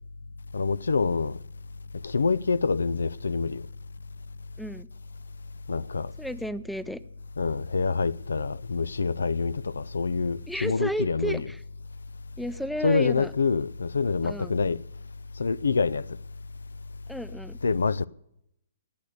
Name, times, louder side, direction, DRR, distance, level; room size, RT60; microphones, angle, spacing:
voice 1, 0.5-1.4 2.0-3.6 5.7-6.1 7.4-11.5 12.8-14.8 15.4-16.1 17.6-18.1, left 4 dB, 85° left, 0.4 m, -26 dB
voice 2, 6.2-7.0 10.5-11.6 12.4-13.3 14.2-14.6 17.1-17.6, equal, ahead, 0.5 m, -33 dB
19.0 x 6.7 x 6.7 m
hypercardioid pair, 135°, 0 cm